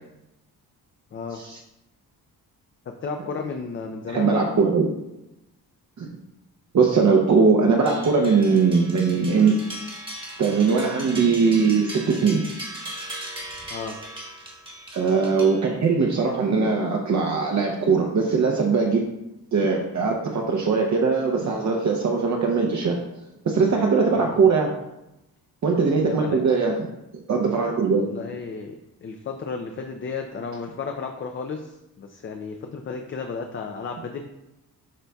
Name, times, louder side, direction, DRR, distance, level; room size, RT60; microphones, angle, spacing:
voice 1, 1.1-1.4 3.0-4.4 13.7-14.0 24.1-24.4 26.0-26.4 28.0-28.7 29.0-34.3, left 5 dB, 35° left, 4 dB, 0.4 m, -33 dB
voice 2, 4.1-4.9 6.0-6.1 6.7-9.5 10.4-12.4 14.9-19.0 19.5-23.0 23.5-24.7 25.6-26.7 27.3-28.0, right 5 dB, 45° right, 0 dB, 0.7 m, -20 dB
sound 1, 7.9-16.0, right 1 dB, 15° right, 1.1 m, -38 dB
11.5 x 4.0 x 2.3 m, 0.92 s
wide cardioid pair, 155°, 38 cm